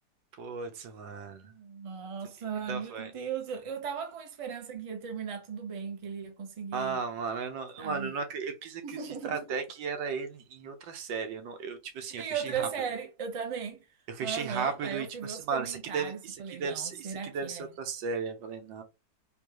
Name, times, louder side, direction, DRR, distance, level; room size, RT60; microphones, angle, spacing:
voice 1, 0.4-1.5 2.7-3.1 6.7-9.0 9.2-12.7 14.2-18.8, right 5 dB, 75° right, 1.5 m, -35 dB
voice 2, 1.4-7.0 7.8-8.1 8.8-9.6 12.1-13.8 14.2-17.7, right 7 dB, 40° right, 0.5 m, -37 dB
3.8 x 3.3 x 3.0 m
omnidirectional pair, 2.0 m